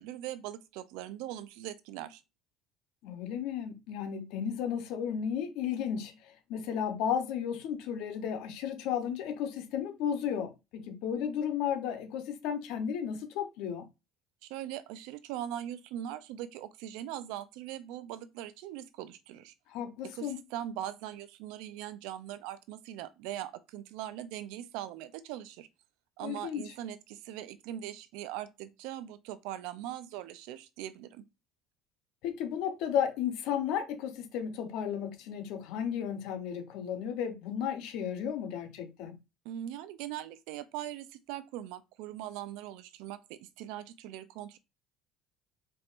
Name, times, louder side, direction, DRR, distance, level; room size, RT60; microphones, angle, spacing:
voice 1, 0.0-2.2 14.4-19.5 20.0-25.7 26.2-31.2 39.4-44.6, right 12 dB, 85° right, 0.5 m, -41 dB
voice 2, 3.0-13.9 19.7-20.4 26.2-26.7 32.2-39.2, left 8 dB, 75° left, 0.8 m, -34 dB
4.3 x 3.5 x 2.5 m
cardioid pair, 145°, 0 cm